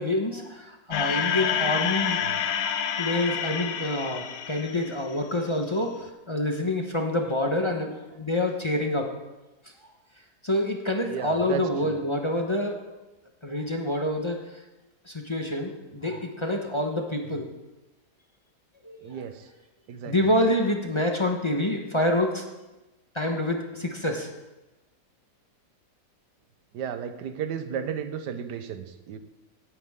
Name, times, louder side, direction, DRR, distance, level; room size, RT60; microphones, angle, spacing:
voice 1, 0.0-2.2 3.0-9.1 10.4-12.8 13.4-14.6 15.1-17.5 18.8-19.2 20.1-22.4 23.1-24.3, left 1 dB, 20° left, 2 dB, 0.9 m, -27 dB
sound 1, 0.9-5.3, left 8 dB, 65° left, 1.1 m, -28 dB
voice 2, 11.0-12.0 16.1-16.2 19.0-19.5 19.9-20.3 26.7-29.2, right 8 dB, 80° right, 9 dB, 1.5 m, -34 dB
16.5 x 9.6 x 3.7 m, 1.1 s
omnidirectional pair, 1.8 m